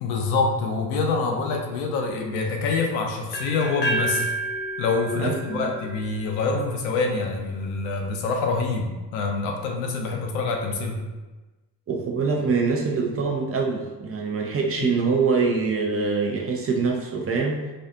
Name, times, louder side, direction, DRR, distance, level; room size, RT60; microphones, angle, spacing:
voice 1, 0.0-4.3 4.8-11.0 14.8-14.9, left 4 dB, 70° left, 2 dB, 0.6 m, -26 dB
sound 1, 3.3-7.2, right 2 dB, 25° left, 0.4 m, -31 dB
voice 2, 5.2-5.7 11.9-17.6, right 4 dB, 30° right, 0 dB, 0.5 m, -24 dB
2.5 x 2.4 x 2.3 m, 1.2 s
hypercardioid pair, 45°, 49 cm